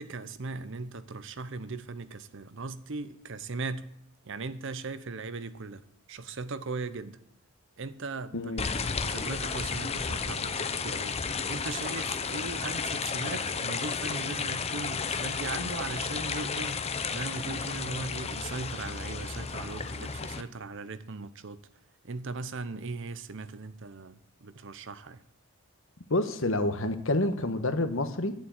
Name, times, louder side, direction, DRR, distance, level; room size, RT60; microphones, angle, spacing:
voice 1, 0.0-3.9 4.2-5.8 6.1-7.2 7.8-11.2 11.5-21.6 22.0-25.2, right 3 dB, 55° right, 0.8 m, -38 dB
voice 2, 8.3-8.7 26.1-28.3, left 2 dB, 60° left, 1.3 m, -28 dB
sound 1, 8.6-20.4, left 5 dB, 30° left, 0.7 m, -33 dB
11.5 x 7.6 x 8.8 m
head